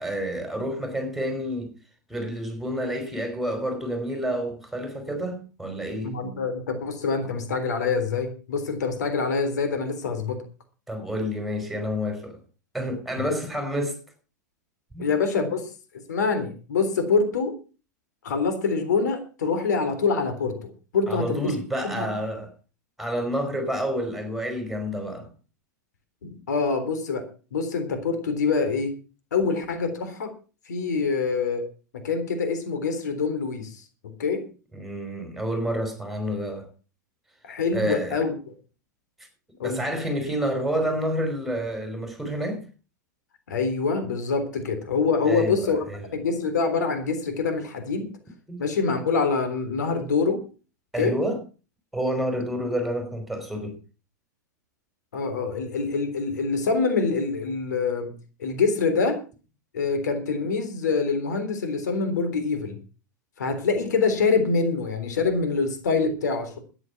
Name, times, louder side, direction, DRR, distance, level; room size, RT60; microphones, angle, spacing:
voice 1, 0.0-1.7 2.1-6.1 10.9-12.4 12.7-14.0 14.9-15.1 21.1-22.5 23.0-25.3 34.7-36.7 37.7-38.2 39.6-42.6 45.2-46.0 48.5-48.6 50.9-51.4 51.9-53.8, equal, ahead, 5.0 m, -29 dB
voice 2, 6.0-10.4 13.2-13.3 15.0-15.7 16.1-17.5 18.2-21.6 21.8-22.1 26.2-27.2 27.5-28.9 29.3-30.3 30.7-31.7 32.0-33.8 34.2-34.4 37.4-38.3 39.6-39.8 43.5-45.8 46.1-48.1 48.6-50.4 51.0-51.1 55.1-58.1 58.4-59.2 59.7-62.8 63.4-66.6, left 4 dB, 70° left, 3.6 m, -25 dB
13.5 x 10.0 x 5.9 m
figure-of-eight pair, 95°, 10 cm